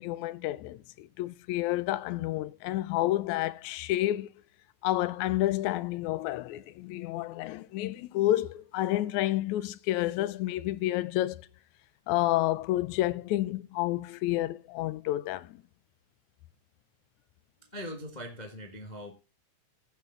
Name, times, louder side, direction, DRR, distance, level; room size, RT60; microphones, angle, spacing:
voice 1, 0.0-4.3 4.8-11.4 12.1-15.6, left 15 dB, 75° left, 1.9 m, -30 dB
voice 2, 17.7-19.1, equal, 55° left, 0.5 m, -41 dB
16.0 x 5.9 x 3.8 m
omnidirectional pair, 3.6 m